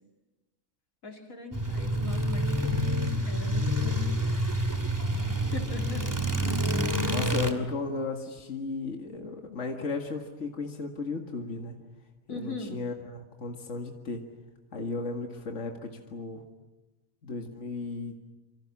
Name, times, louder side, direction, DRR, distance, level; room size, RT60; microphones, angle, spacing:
voice 1, 1.0-2.9 3.3-4.8 5.3-6.1 12.3-12.8, left 2 dB, 85° left, 2 dB, 3.8 m, -41 dB
sound 1, 1.5-7.5, equal, 15° right, 2.5 m, -28 dB
voice 2, 7.1-11.7 12.3-13.1 13.4-14.3 14.7-16.4 17.2-18.1, left 3 dB, 60° left, 2 dB, 2.3 m, -35 dB
27.5 x 26.5 x 7.3 m, 1.1 s
omnidirectional pair, 1.4 m